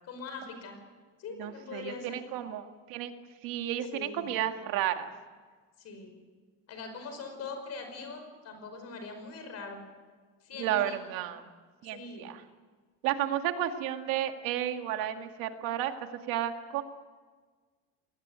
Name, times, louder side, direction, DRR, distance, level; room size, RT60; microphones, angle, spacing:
voice 1, 0.0-0.8 1.2-2.2 3.9-4.3 5.8-6.2 6.7-9.8 10.4-11.0 11.8-12.3, left 4 dB, 45° left, 6 dB, 5.3 m, -42 dB
voice 2, 1.4-3.1 3.4-5.1 10.6-11.4 11.8-12.4 13.0-15.9 16.3-16.8, right 11 dB, 75° right, 6 dB, 2.2 m, -32 dB
22.0 x 19.5 x 9.6 m, 1.5 s
cardioid pair, 155°, 34 cm